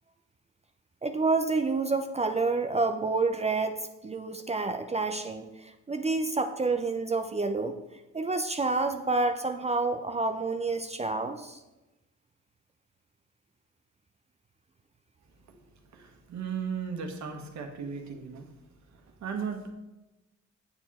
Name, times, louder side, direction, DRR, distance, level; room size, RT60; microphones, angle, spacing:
voice 1, 1.0-7.8 8.1-11.6, right 3 dB, 20° right, 6 dB, 0.6 m, -28 dB
voice 2, 15.9-18.5 18.9-19.7, right 6 dB, 65° right, 4 dB, 1.6 m, -36 dB
8.8 x 7.7 x 4.3 m, 1.0 s
cardioid pair, 90°, 30 cm